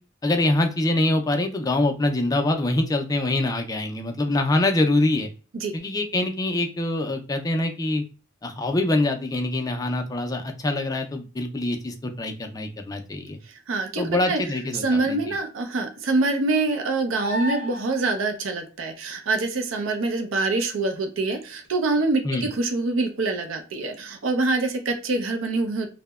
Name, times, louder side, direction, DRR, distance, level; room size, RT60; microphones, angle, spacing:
voice 1, 0.2-5.3 5.7-8.0 8.4-13.4 14.0-15.4 22.2-22.5, left 2 dB, 20° left, 4 dB, 0.3 m, -24 dB
voice 2, 13.5-14.4 14.7-25.9, right 3 dB, 70° right, 5 dB, 0.5 m, -25 dB
sound 1, 17.2-18.1 21.6-21.7, equal, 35° right, 0.9 m, -31 dB
2.7 x 2.1 x 2.2 m, 0.35 s
head